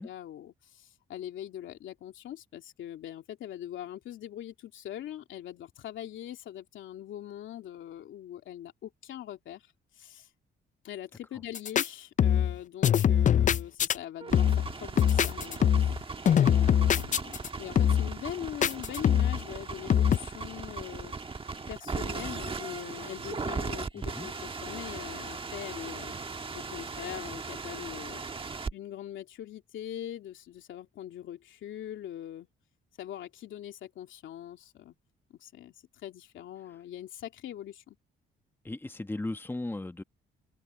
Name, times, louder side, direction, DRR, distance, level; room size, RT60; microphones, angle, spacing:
voice 1, 0.0-9.6 9.9-10.3 10.8-15.9 16.3-21.1 21.7-26.1 26.5-28.2 28.7-32.5 33.0-34.9 35.3-35.7 36.0-38.0, left 11 dB, 75° left, 2.8 m, -42 dB
sound 1, 11.6-11.9 12.2-12.6 12.8-14.0 14.3-14.7 15.0-16.0 16.3-17.5 17.8-18.1 18.6-19.4 19.9-20.2, left 9 dB, 40° left, 0.4 m, -23 dB
sound 2, 14.2-28.7, right 4 dB, 25° right, 1.4 m, -38 dB
voice 2, 23.9-24.3 38.6-40.0, left 2 dB, 10° left, 1.3 m, -36 dB
cardioid pair, 90°, 20 cm